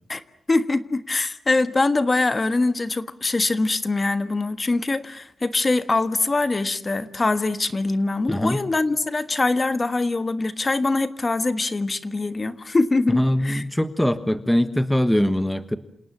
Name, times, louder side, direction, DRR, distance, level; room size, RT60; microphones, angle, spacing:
voice 1, 0.5-13.6, left 3 dB, 25° left, 11 dB, 1.4 m, -23 dB
voice 2, 8.3-8.6 13.1-15.8, equal, 5° left, 11 dB, 1.3 m, -22 dB
28.5 x 28.0 x 7.4 m, 0.68 s
wide cardioid pair, 165°, 0 cm